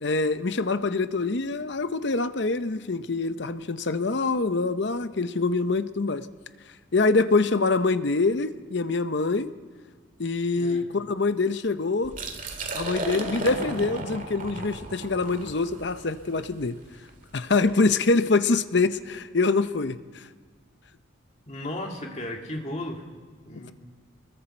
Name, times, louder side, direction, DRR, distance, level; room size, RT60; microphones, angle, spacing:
voice 1, 0.0-6.3 6.9-9.5 10.2-12.1 12.7-16.8 17.3-20.2, left 3 dB, 55° left, 11 dB, 0.7 m, -25 dB
voice 2, 10.6-10.9 21.5-23.0 23.4-23.7, left 1 dB, 35° left, 0 dB, 2.4 m, -35 dB
Liquid, 12.0-17.8, right 2 dB, 40° right, 2.0 m, -35 dB
28.0 x 21.0 x 4.4 m, 1.5 s
head